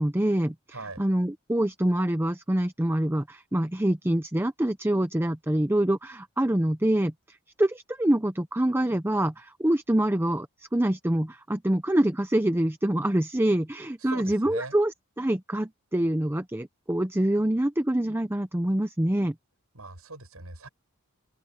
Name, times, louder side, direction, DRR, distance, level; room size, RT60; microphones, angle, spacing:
voice 1, 0.0-0.5 1.0-19.3, right 1 dB, 10° right, 0.7 m, -25 dB
voice 2, 0.7-1.0 14.0-14.8 19.7-20.7, right 3 dB, 90° right, 7.9 m, -40 dB
open air
head